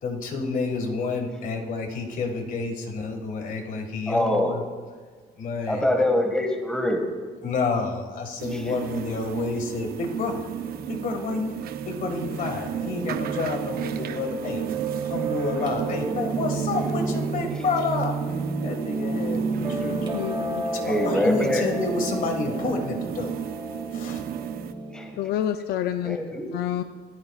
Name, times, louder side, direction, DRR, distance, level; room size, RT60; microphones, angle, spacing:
voice 1, 0.0-4.6 5.4-5.8 7.4-10.5 10.9-11.5 11.9-14.6 15.0-18.2 18.6-20.1 20.7-23.3 23.9-24.2, left 4 dB, 55° left, 4 dB, 1.8 m, -29 dB
voice 2, 4.1-4.6 5.7-7.0 8.5-8.8 20.7-21.6 24.9-25.2 26.0-26.5, left 1 dB, 5° left, 3 dB, 1.7 m, -24 dB
sound 1, 8.4-24.7, right 10 dB, 65° right, 0.7 m, -34 dB
Piano, 10.6-25.1, right 3 dB, 30° right, 3.0 m, -31 dB
voice 3, 20.1-20.6 25.2-26.2 26.5-26.8, left 11 dB, 70° left, 9 dB, 0.5 m, -28 dB
25.0 x 9.5 x 2.4 m, 1.5 s
cardioid pair, 110°, 17 cm